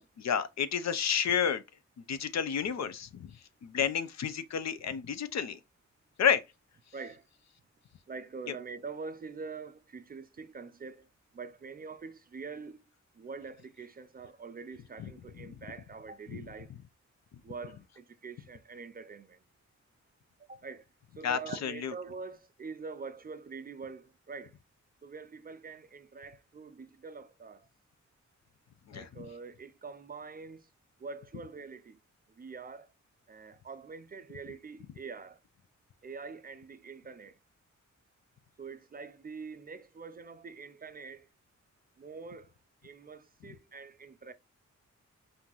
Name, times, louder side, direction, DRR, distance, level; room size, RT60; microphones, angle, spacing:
voice 1, 0.2-1.6 2.1-3.3 3.6-5.6 6.2-6.4 8.5-8.6 15.0-15.1 15.4-15.5 16.3-16.4 21.2-21.9 28.9-29.3, left 8 dB, 65° left, 0.6 m, -31 dB
voice 2, 6.9-7.2 8.1-11.1 11.3-12.8 13.2-16.7 17.4-19.4 20.5-20.8 21.2-24.5 25.0-27.7 28.9-30.6 31.0-32.0 32.4-32.9 33.3-35.4 36.0-37.4 38.6-41.3 42.0-42.5 42.8-44.3, right 4 dB, 30° right, 0.4 m, -45 dB
5.6 x 2.6 x 3.0 m
wide cardioid pair, 155°, 29 cm